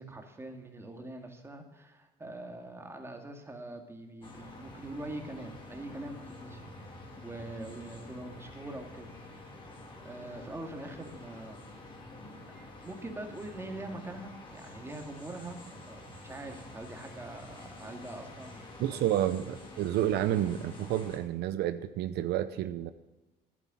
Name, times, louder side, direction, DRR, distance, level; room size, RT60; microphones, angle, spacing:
voice 1, 0.0-9.6 10.0-11.7 12.8-19.1 19.7-19.9, right 2 dB, 15° right, 4 dB, 2.2 m, -44 dB
sound 1, 4.2-21.2, left 2 dB, 30° left, 3.2 m, -48 dB
voice 2, 18.8-22.9, right 12 dB, 75° right, 11 dB, 0.7 m, -30 dB
10.0 x 9.5 x 8.7 m, 1.1 s
cardioid pair, 110°, 17 cm